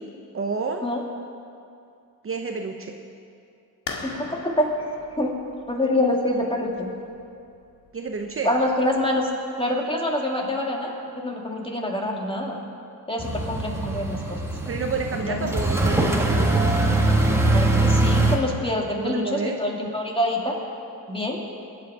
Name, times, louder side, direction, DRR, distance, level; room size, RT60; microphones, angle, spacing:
voice 1, 0.3-0.9 2.2-3.0 7.9-8.6 14.7-16.5 19.0-19.6, right 4 dB, 35° right, 4 dB, 0.9 m, -29 dB
sound 1, 3.9-9.3, left 4 dB, 60° left, 1.9 m, -41 dB
voice 2, 4.0-4.7 5.1-5.3 5.7-6.9 8.4-9.3 9.6-12.6 13.1-14.4 15.1-15.5 17.5-20.6 21.1-21.4, left 1 dB, 15° left, 0 dB, 2.3 m, -26 dB
sound 2, 13.2-18.4, right 2 dB, 5° right, 1.6 m, -22 dB
21.0 x 8.5 x 4.9 m, 2.5 s
cardioid pair, 95°, 37 cm